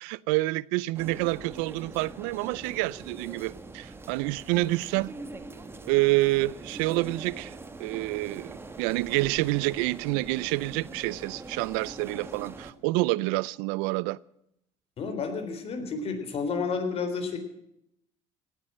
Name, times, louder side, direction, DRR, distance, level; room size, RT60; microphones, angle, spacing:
voice 1, 0.0-5.1 5.9-14.2, right 20 dB, 90° right, 0.5 m, -28 dB
sound 1, 0.9-12.7, right 3 dB, 15° right, 1.5 m, -43 dB
voice 2, 15.0-17.4, left 5 dB, 45° left, 3.8 m, -31 dB
17.5 x 9.9 x 7.6 m
cardioid pair, 115°, 15 cm